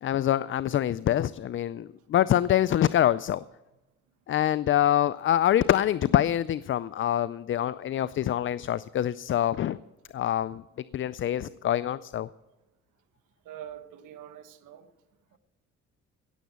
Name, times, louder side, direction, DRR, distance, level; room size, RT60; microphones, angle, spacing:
voice 1, 0.0-3.4 4.3-9.8 10.1-10.6 10.9-12.3, left 11 dB, 45° left, 0.4 m, -25 dB
voice 2, 13.4-14.9 15.3-15.4, right 10 dB, 90° right, 1.2 m, -44 dB
17.5 x 7.3 x 6.9 m
cardioid pair, 90°, 30 cm